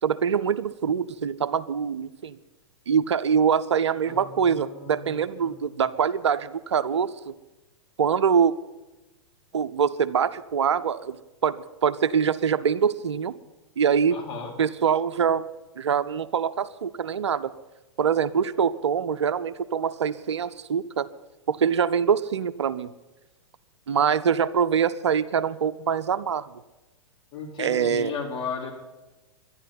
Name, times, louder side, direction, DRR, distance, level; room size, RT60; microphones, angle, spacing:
voice 1, 0.0-2.4 2.9-7.4 8.0-8.5 9.5-11.2 11.4-13.3 13.8-14.2 14.6-15.5 15.8-17.5 18.0-21.1 21.5-22.9 23.9-26.5 27.6-28.1, right 7 dB, 75° right, 14 dB, 0.7 m, -24 dB
voice 2, 4.0-5.8 14.1-14.5 27.3-28.7, left 5 dB, 30° left, -1 dB, 4.4 m, -36 dB
12.0 x 11.0 x 9.7 m, 1.1 s
hypercardioid pair, 110°, 15 cm